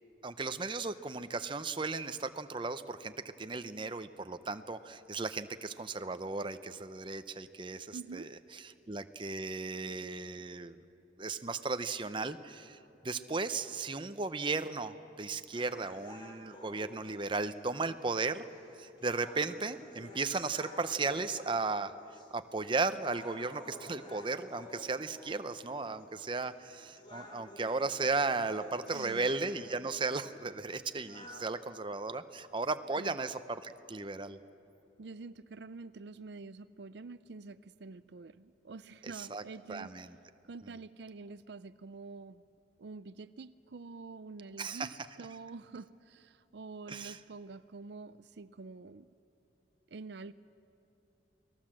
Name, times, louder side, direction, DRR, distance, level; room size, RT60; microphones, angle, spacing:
voice 1, 0.2-8.3 8.9-10.8 11.2-12.8 13.0-18.4 18.8-21.9 22.3-34.4 39.0-39.4 39.7-40.1 44.6-44.9 46.9-47.2, right 3 dB, 25° right, 11 dB, 0.7 m, -35 dB
voice 2, 7.9-8.3 28.9-29.3 33.0-33.2 35.0-40.1 40.4-42.4 42.8-49.1 49.9-50.3, right 4 dB, 70° right, 14 dB, 0.5 m, -47 dB
sound 1, 15.5-31.5, left 1 dB, 25° left, 3.8 m, -52 dB
29.5 x 19.5 x 7.6 m, 2.8 s
head